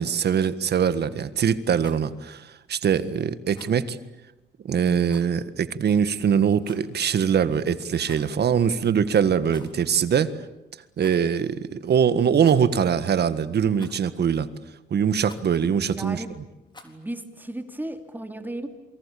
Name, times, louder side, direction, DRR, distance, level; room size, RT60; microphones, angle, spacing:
voice 1, 0.0-4.0 4.6-10.3 11.0-14.5 14.9-16.2, right 7 dB, 55° right, 13 dB, 1.7 m, -22 dB
Rattle, 1.7-2.1 3.5-3.8 5.1-5.3 6.6-7.0 7.9-8.4 9.4-9.9 10.1-10.2 11.0-11.2 12.4-12.9 13.8-14.2 15.2-15.5 16.7-17.0, left 2 dB, 20° left, 4.1 m, -49 dB
voice 2, 15.8-16.3 16.8-18.7, right 1 dB, 10° right, 7 dB, 2.9 m, -35 dB
28.0 x 24.0 x 8.6 m, 0.96 s
cardioid pair, 90°, 20 cm